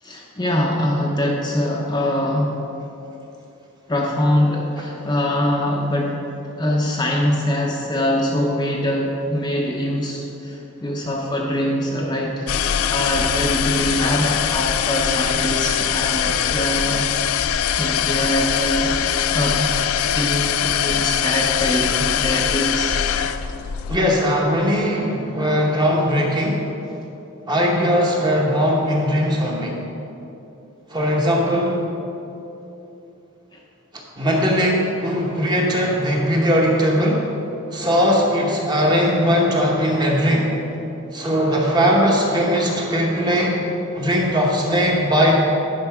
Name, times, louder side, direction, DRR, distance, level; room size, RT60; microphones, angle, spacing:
voice 1, 0.0-2.6 3.9-6.2 6.6-17.1 17.8-18.9 19.3-19.7 20.1-23.0 33.5-33.6, left 1 dB, 20° left, -2 dB, 0.6 m, -23 dB
sound 1, 12.5-24.0, left 9 dB, 90° left, 0.4 m, -22 dB
voice 2, 23.9-26.6 27.5-29.8 30.9-31.8 34.2-37.2 37.7-40.5 41.1-43.6 43.9-45.4, equal, 20° right, -1 dB, 1.0 m, -19 dB
10.5 x 5.3 x 4.8 m, 3.0 s
head